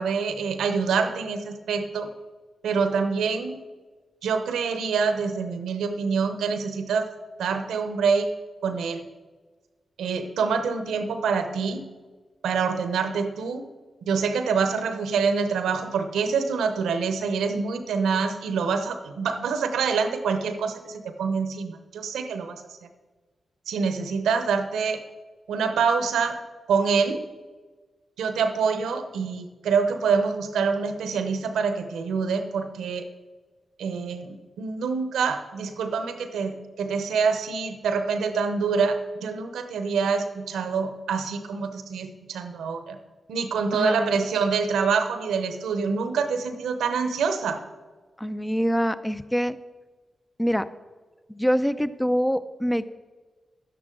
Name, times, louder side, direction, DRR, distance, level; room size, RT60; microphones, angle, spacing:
voice 1, 0.0-2.1 2.6-3.6 4.2-7.1 7.4-8.3 8.6-9.1 10.0-11.8 12.4-13.7 14.1-22.6 23.7-25.0 25.5-26.4 26.7-27.2 28.2-33.1 33.8-43.0 43.3-47.6, right 5 dB, 85° right, 8 dB, 0.8 m, -26 dB
voice 2, 43.8-44.1 48.2-49.6 50.4-50.7 51.3-52.9, equal, 10° left, 13 dB, 0.6 m, -25 dB
11.5 x 10.0 x 3.8 m, 1.3 s
supercardioid pair, 40°, 0 cm